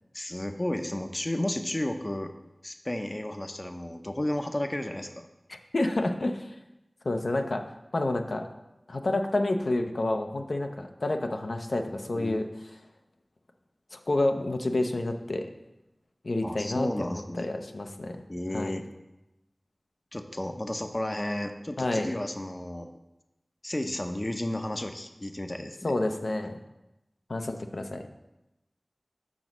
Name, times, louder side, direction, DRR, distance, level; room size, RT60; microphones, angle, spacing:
voice 1, 0.1-2.3 2.6-5.3 12.1-12.4 16.4-17.5 18.3-18.8 20.1-22.9 23.6-25.9, left 1 dB, 35° left, 6 dB, 0.5 m, -33 dB
voice 2, 5.5-6.5 7.0-7.6 7.9-8.5 8.9-12.5 13.9-15.5 16.2-18.2 18.5-18.8 21.8-22.1 25.8-26.6 27.3-28.1, left 2 dB, 80° left, 5 dB, 0.6 m, -29 dB
6.1 x 3.9 x 6.1 m, 0.95 s
wide cardioid pair, 45°, 0 cm